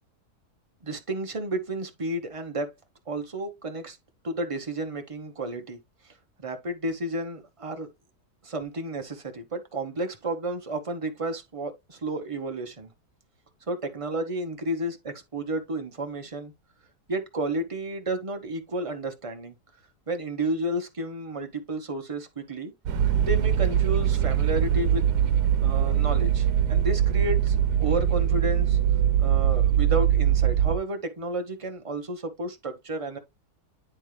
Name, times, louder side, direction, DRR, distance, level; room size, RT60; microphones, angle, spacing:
voice 1, 0.8-2.7 3.1-4.0 4.2-5.8 6.4-7.9 8.4-12.9 13.7-16.5 17.1-19.5 20.1-22.7 23.2-25.0 25.6-28.8 29.2-33.2, right 1 dB, 25° right, 0.8 m, -32 dB
sound 1, 22.9-30.8, right 10 dB, 80° right, 1.3 m, -22 dB
9.9 x 3.6 x 3.2 m
omnidirectional pair, 1.7 m